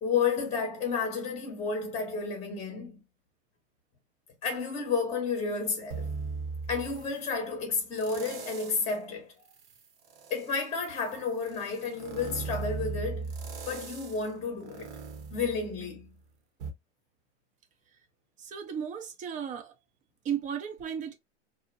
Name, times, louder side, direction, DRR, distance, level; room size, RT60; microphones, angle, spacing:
voice 1, 0.0-3.0 4.4-6.1 6.7-9.3 10.3-13.3 13.7-14.9 15.3-16.1, left 5 dB, 20° left, 0.8 m, -31 dB
sound 1, 5.9-7.3 7.9-9.0 9.4-16.1 16.6-16.7, right 4 dB, 55° right, 0.9 m, -39 dB
voice 2, 18.4-19.7 20.2-21.1, right 8 dB, 20° right, 0.5 m, -34 dB
2.6 x 2.0 x 2.5 m
hypercardioid pair, 115°, 34 cm